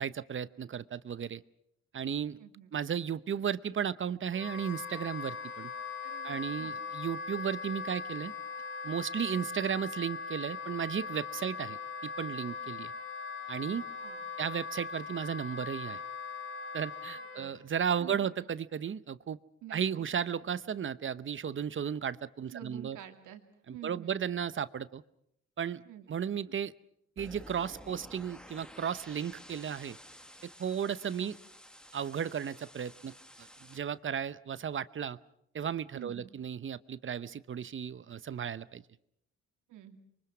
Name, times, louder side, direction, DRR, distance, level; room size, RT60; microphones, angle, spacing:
voice 1, 0.0-1.4 1.9-2.4 2.7-5.7 6.2-8.3 8.8-11.8 12.0-12.9 13.5-13.9 14.4-16.0 16.7-19.4 19.7-23.0 23.7-25.0 25.6-25.8 26.1-26.7 27.2-30.0 30.4-31.4 31.9-35.2 35.5-38.8, right 8 dB, 40° right, 16 dB, 0.8 m, -34 dB
voice 2, 2.4-2.7 6.0-6.8 11.4-11.5 14.0-14.3 17.1-17.5 18.0-18.3 19.6-20.1 22.5-23.4 23.7-24.2 25.8-26.1 31.2-31.3 35.9-36.3 39.7-40.0, right 11 dB, 85° right, 6 dB, 2.6 m, -48 dB
Wind instrument woodwind instrument, 4.3-17.5, left 5 dB, 45° left, 4.0 m, -40 dB
sound 1, 27.2-33.8, equal, 5° left, 1.6 m, -52 dB
26.5 x 23.5 x 6.1 m, 0.74 s
cardioid pair, 90°, 30 cm